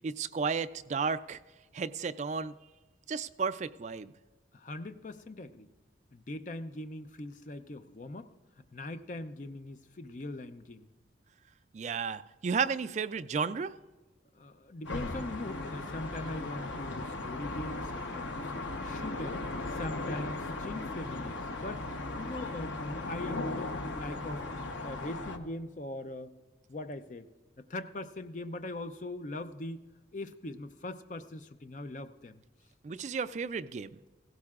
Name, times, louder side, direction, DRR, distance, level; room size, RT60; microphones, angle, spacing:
voice 1, 0.0-1.4 1.7-2.5 3.1-4.1 11.7-13.7 32.8-34.0, right 5 dB, 40° right, 12 dB, 0.3 m, -33 dB
voice 2, 4.5-5.7 6.1-8.3 8.6-10.9 14.3-18.5 18.8-24.4 24.8-26.3 26.7-27.3 27.7-29.8 30.1-32.4, left 2 dB, 40° left, 9 dB, 0.5 m, -41 dB
sound 1, 14.8-25.4, left 2 dB, 90° left, 1.0 m, -37 dB
17.0 x 16.0 x 2.4 m, 1.3 s
head